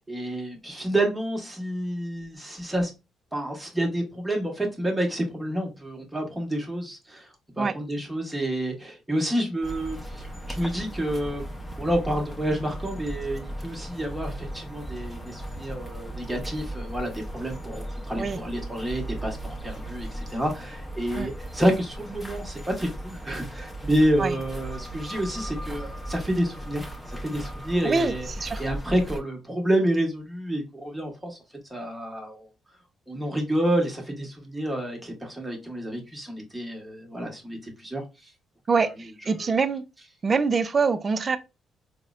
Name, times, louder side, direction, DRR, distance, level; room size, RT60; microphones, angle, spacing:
voice 1, 0.1-2.9 3.3-7.3 7.6-11.4 11.8-26.9 27.2-28.3 28.6-31.4 31.7-32.5 33.1-38.0, right 1 dB, 10° right, 1.1 m, -29 dB
sound 1, 9.6-29.2, right 1 dB, 10° left, 0.8 m, -37 dB
voice 2, 27.8-28.6 38.7-39.8 40.2-41.4, right 4 dB, 40° right, 0.4 m, -25 dB
4.0 x 2.1 x 2.4 m
cardioid pair, 90°, 0 cm